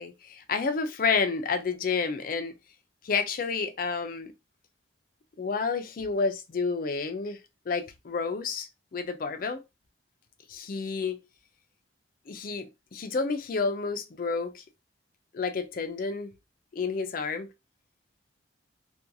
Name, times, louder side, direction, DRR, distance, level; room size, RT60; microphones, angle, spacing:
voice 1, 0.0-2.5 3.0-4.3 5.4-7.4 7.7-9.6 10.5-11.2 12.3-14.6 15.3-16.3 16.7-17.5, left 4 dB, 45° left, 0.4 m, -30 dB
2.5 x 2.2 x 2.6 m
head